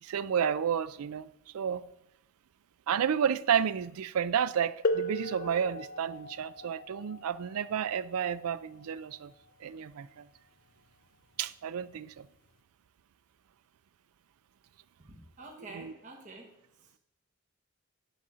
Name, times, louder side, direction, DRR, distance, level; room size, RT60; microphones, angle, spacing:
voice 1, 0.0-1.3 1.5-1.9 2.9-9.3 9.6-10.2 11.4-12.3 15.7-15.9, right 8 dB, 85° right, 0.4 m, -31 dB
sound 1, 4.8-10.3 11.3-11.4 12.3-12.5, left 1 dB, 40° left, 0.5 m, -37 dB
voice 2, 15.1-16.5 16.8-16.9, right 3 dB, 35° right, 1.1 m, -48 dB
10.0 x 4.1 x 6.1 m
head